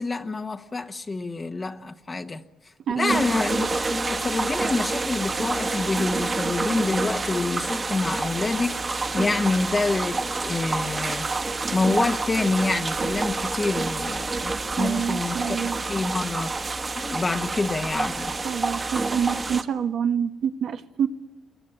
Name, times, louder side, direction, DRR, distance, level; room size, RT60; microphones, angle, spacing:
voice 1, 0.0-2.4 3.0-15.6 15.9-16.5 17.0-18.3, left 3 dB, 30° left, 1.1 m, -27 dB
voice 2, 2.9-3.2 14.7-15.8 18.4-21.1, right 8 dB, 75° right, 1.3 m, -27 dB
sound 1, 3.1-19.6, right 3 dB, 35° right, 1.7 m, -28 dB
25.5 x 23.0 x 9.1 m
cardioid pair, 90°, 0 cm